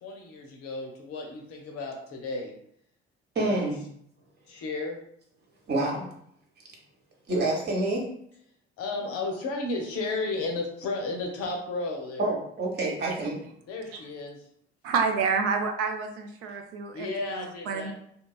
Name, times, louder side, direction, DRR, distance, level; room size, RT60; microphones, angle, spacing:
voice 1, 0.0-2.5 3.4-3.7 4.5-5.0 8.8-12.3 13.7-14.4 16.9-17.9, left 3 dB, 50° left, 1 dB, 0.6 m, -33 dB
voice 2, 3.3-3.8 5.7-6.0 7.3-8.1 12.2-13.4, right 2 dB, 30° right, -1 dB, 0.9 m, -27 dB
voice 3, 14.8-17.9, right 5 dB, 50° right, 5 dB, 0.4 m, -29 dB
2.8 x 2.2 x 2.3 m, 0.67 s
figure-of-eight pair, 50°, 32 cm